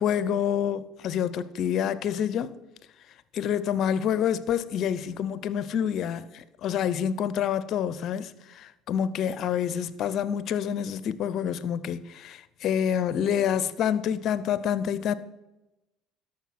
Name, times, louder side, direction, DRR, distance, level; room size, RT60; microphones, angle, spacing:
voice 1, 0.0-2.5 3.3-15.1, left 9 dB, 55° left, 0.6 m, -27 dB
12.0 x 6.1 x 5.9 m
supercardioid pair, 80°, 0 cm